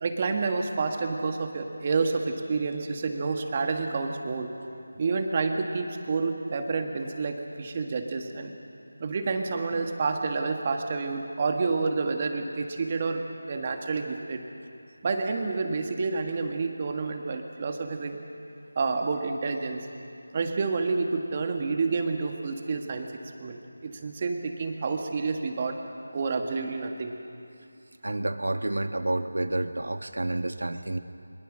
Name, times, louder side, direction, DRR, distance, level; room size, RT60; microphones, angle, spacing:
voice 1, 0.0-4.5 5.0-8.5 9.0-14.4 15.0-18.2 18.8-19.9 20.3-23.1 23.4-25.8 26.1-27.1, right 4 dB, 30° right, 4 dB, 1.8 m, -29 dB
voice 2, 28.0-31.0, right 1 dB, 75° right, 8 dB, 1.5 m, -29 dB
24.0 x 22.0 x 6.3 m, 2.6 s
figure-of-eight pair, 165°, 0 cm